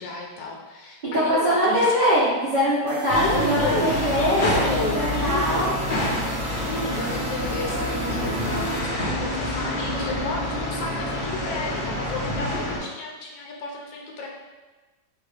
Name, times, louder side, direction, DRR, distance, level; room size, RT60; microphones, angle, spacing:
voice 1, 0.0-2.0 3.1-5.8 6.6-14.3, left 3 dB, 75° left, -1 dB, 1.2 m, -32 dB
voice 2, 1.0-5.7, equal, 40° right, -11 dB, 0.7 m, -22 dB
sound 1, 2.9-8.8, right 4 dB, 80° right, 0.7 m, -34 dB
sound 2, 3.1-12.8, left 1 dB, 45° left, 0.7 m, -27 dB
2.9 x 2.8 x 3.3 m, 1.2 s
omnidirectional pair, 1.9 m